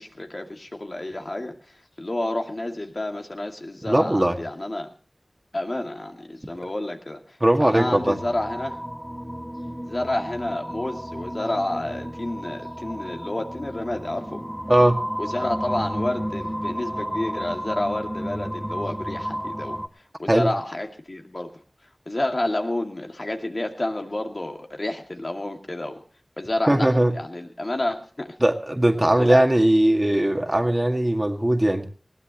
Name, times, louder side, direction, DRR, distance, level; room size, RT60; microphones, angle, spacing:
voice 1, 0.0-1.5 2.0-4.9 5.5-7.2 7.6-8.8 9.8-14.4 15.2-19.8 20.2-21.5 22.1-26.0 26.4-28.3 29.2-29.4, left 1 dB, 50° left, 3 dB, 2.3 m, -29 dB
voice 2, 3.9-4.4 7.4-8.2 14.7-15.0 20.3-20.5 26.7-27.1 28.4-31.9, right 1 dB, 25° right, 3 dB, 2.0 m, -19 dB
sound 1, 7.7-19.9, equal, 5° right, 1.3 m, -32 dB
20.5 x 16.5 x 3.0 m, 0.38 s
wide cardioid pair, 45°, 0 cm